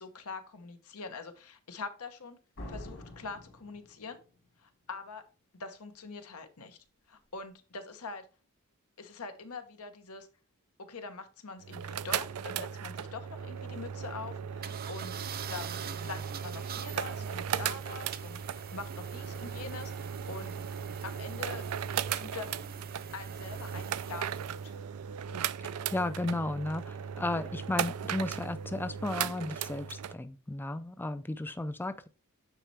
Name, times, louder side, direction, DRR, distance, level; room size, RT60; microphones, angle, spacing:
voice 1, 0.0-2.4 2.7-4.2 4.6-5.2 5.5-6.8 7.1-8.3 9.0-10.3 10.8-15.2 15.5-20.5 21.0-21.6 22.1-22.5 23.1-24.7, left 4 dB, 80° left, 1.1 m, -44 dB
Slam, 2.6-4.5, left 1 dB, 60° left, 2.7 m, -45 dB
sound 1, 11.6-30.1, right 8 dB, 85° right, 0.4 m, -37 dB
sound 2, 14.6-24.8, right 8 dB, 45° right, 0.6 m, -45 dB
voice 2, 25.9-32.1, left 2 dB, 10° left, 0.4 m, -34 dB
9.0 x 4.2 x 3.3 m
head